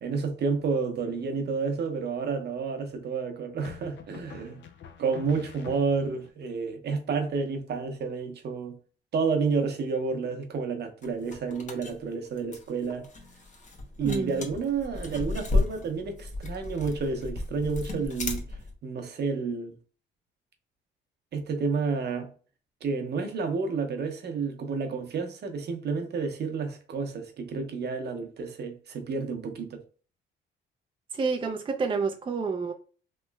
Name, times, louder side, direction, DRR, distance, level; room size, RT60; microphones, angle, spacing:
voice 1, 0.0-4.6 5.0-8.8 9.1-13.1 14.0-18.4 18.8-19.7 21.3-22.3 22.8-29.8, right 4 dB, 55° right, 0.8 m, -30 dB
sound 1, 1.0-1.6 3.6-6.3, left 8 dB, 65° left, 0.5 m, -46 dB
sound 2, 11.0-18.7, left 2 dB, 40° left, 0.9 m, -33 dB
voice 2, 14.0-14.4 31.1-32.7, right 4 dB, 25° right, 0.4 m, -29 dB
3.1 x 2.9 x 2.2 m
cardioid pair, 90°, 20 cm